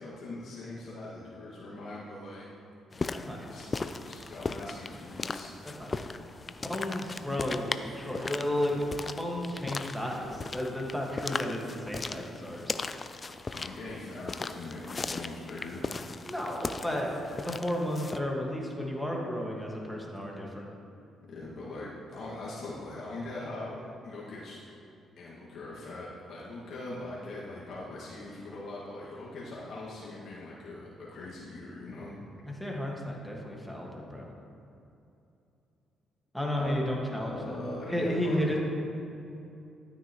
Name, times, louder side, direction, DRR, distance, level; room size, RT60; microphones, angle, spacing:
voice 1, 0.0-2.4 3.5-5.5 13.5-15.9 21.3-24.6 25.2-32.2 36.5-38.6, left 2 dB, 65° left, -7 dB, 1.9 m, -41 dB
sound 1, 2.9-18.2, left 3 dB, 30° left, 0.4 m, -38 dB
voice 2, 3.1-3.6 5.8-5.9 6.6-12.7 16.2-20.7 32.5-34.3 36.3-37.5 37.9-38.6, left 1 dB, ahead, -2 dB, 1.8 m, -33 dB
12.5 x 9.3 x 3.1 m, 2.7 s
cardioid pair, 90°, 0 cm